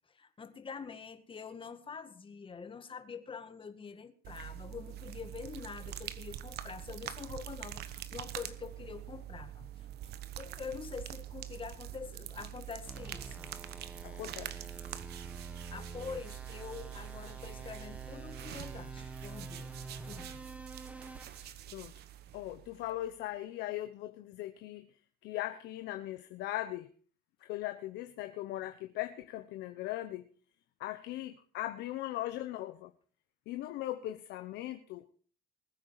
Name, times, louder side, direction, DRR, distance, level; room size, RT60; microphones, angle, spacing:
voice 1, 0.1-13.5 15.7-19.8 20.0-20.4, left 5 dB, 30° left, 9 dB, 1.8 m, -45 dB
sound 1, 4.2-23.1, right 12 dB, 75° right, 1.1 m, -45 dB
sound 2, 12.9-21.9, right 2 dB, 10° right, 1.3 m, -49 dB
voice 2, 14.0-14.5 21.7-21.9 22.3-24.9 25.2-26.9 27.4-30.2 30.8-32.9 33.5-35.1, left 15 dB, 85° left, 9 dB, 1.0 m, -39 dB
20.5 x 8.9 x 4.8 m, 0.43 s
cardioid pair, 110°, 17 cm